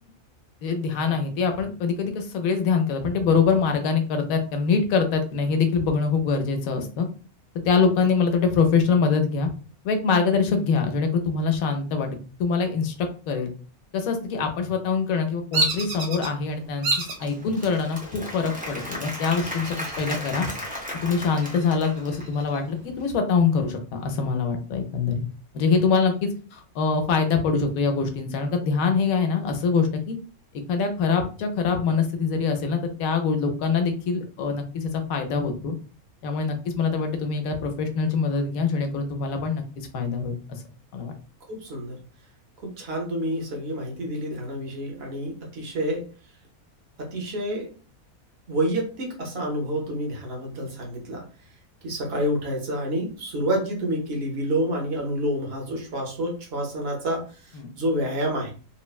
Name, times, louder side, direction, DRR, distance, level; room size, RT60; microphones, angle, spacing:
voice 1, 0.6-7.1 7.6-9.5 9.8-12.9 13.3-13.5 13.9-20.5 21.0-25.2 25.5-30.2 30.7-35.7 36.2-40.6 40.9-41.1 57.5-57.7, left 5 dB, 75° left, 5 dB, 1.0 m, -24 dB
Bird vocalization bird call bird song, 15.5-16.3 16.8-17.3 17.8-18.3 19.5-20.3 20.6-20.7 21.2-22.6, right 2 dB, 85° right, 1.3 m, -28 dB
Applause / Crowd, 17.0-22.4, left 1 dB, 15° right, 0.3 m, -36 dB
voice 2, 41.5-42.0 42.6-46.1 47.0-47.7 48.5-51.3 51.8-58.5, equal, 50° right, 0 dB, 0.9 m, -28 dB
3.2 x 2.1 x 2.3 m, 0.37 s
omnidirectional pair, 1.5 m